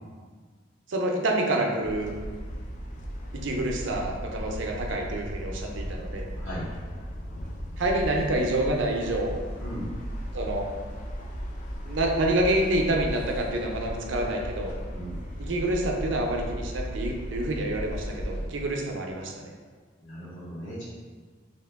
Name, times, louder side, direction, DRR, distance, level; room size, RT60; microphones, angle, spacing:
voice 1, 0.9-2.1 3.3-6.3 7.8-9.4 10.3-10.7 11.8-14.7 15.4-19.5, right 1 dB, 85° right, 1 dB, 0.5 m, -27 dB
sound 1, 1.8-18.5, equal, 45° left, 0.4 m, -36 dB
voice 2, 20.0-20.8, equal, 85° left, -9 dB, 1.4 m, -37 dB
2.9 x 2.8 x 3.4 m, 1.5 s
head